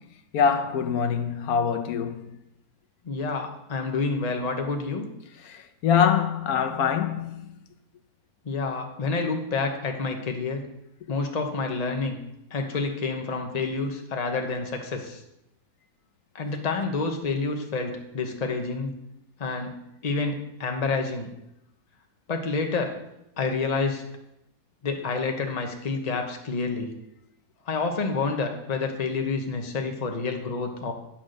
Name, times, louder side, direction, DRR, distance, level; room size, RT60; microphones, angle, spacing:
voice 1, 0.3-2.2 5.8-7.4, left 7 dB, 90° left, 1.2 m, -23 dB
voice 2, 3.0-5.1 8.4-10.7 11.1-12.2 12.5-15.2 16.3-18.9 19.4-19.7 20.0-21.3 22.3-23.0 23.4-24.0 24.8-27.0 27.7-30.9, left 4 dB, 30° left, 1.0 m, -28 dB
10.5 x 4.3 x 6.4 m
omnidirectional pair, 1.5 m